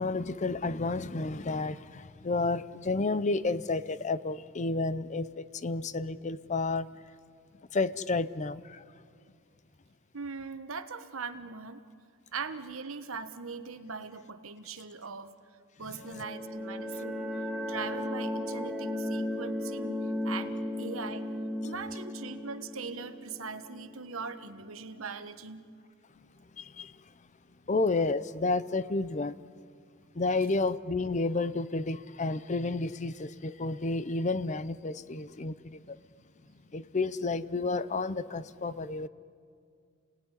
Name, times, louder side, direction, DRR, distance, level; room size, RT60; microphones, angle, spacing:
voice 1, 0.0-6.9 7.7-8.8 26.6-26.9 27.7-29.4 30.2-36.0 36.7-39.1, left 3 dB, 35° left, 0.6 m, -31 dB
voice 2, 10.1-11.8 12.3-15.3 15.8-17.3 17.6-20.0 20.2-21.2 21.6-25.7, right 4 dB, 70° right, 1.3 m, -40 dB
sound 1, 15.9-24.5, left 1 dB, ahead, 1.8 m, -35 dB
29.5 x 19.0 x 9.9 m
head